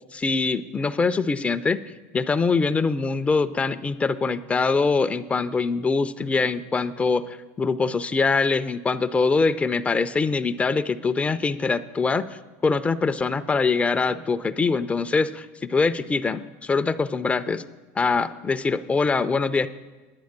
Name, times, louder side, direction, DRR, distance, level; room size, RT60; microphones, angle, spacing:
voice 1, 0.1-1.8 2.1-17.6 18.0-19.7, left 4 dB, 15° left, 12 dB, 0.4 m, -23 dB
10.5 x 8.1 x 6.6 m, 1.3 s
supercardioid pair, 115°, 7 cm